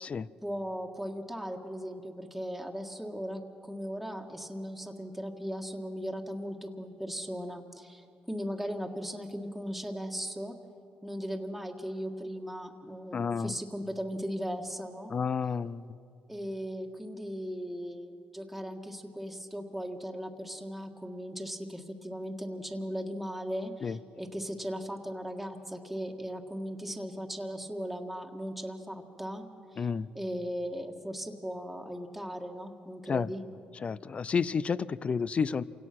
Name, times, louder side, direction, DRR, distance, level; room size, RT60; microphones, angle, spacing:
voice 1, 0.4-10.6 11.0-15.1 16.3-29.9 30.1-33.4, equal, ahead, 1 dB, 1.8 m, -38 dB
voice 2, 13.1-13.5 15.1-15.8 23.8-24.0 29.8-30.1 33.1-33.3 33.8-35.6, left 6 dB, 40° left, 19 dB, 0.5 m, -30 dB
27.5 x 17.5 x 6.1 m, 2.6 s
cardioid pair, 85°, 3 cm